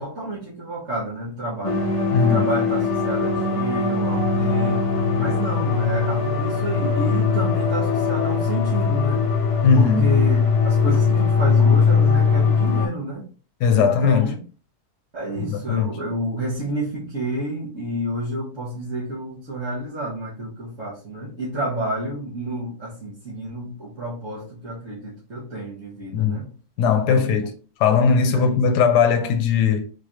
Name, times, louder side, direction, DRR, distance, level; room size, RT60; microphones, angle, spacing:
voice 1, 0.0-1.9 2.2-4.9 5.2-9.3 9.7-13.3 13.7-14.4 15.1-26.5 27.1-27.4 28.3-28.6, right 1 dB, 50° right, 1.4 m, -30 dB
sound 1, 1.6-12.9, left 5 dB, 60° left, 0.3 m, -20 dB
voice 2, 2.1-2.5 9.6-10.2 13.6-14.3 15.4-15.9 26.1-26.4 26.8-27.5 27.8-29.9, left 6 dB, 80° left, 1.2 m, -19 dB
4.3 x 3.2 x 2.4 m
omnidirectional pair, 1.8 m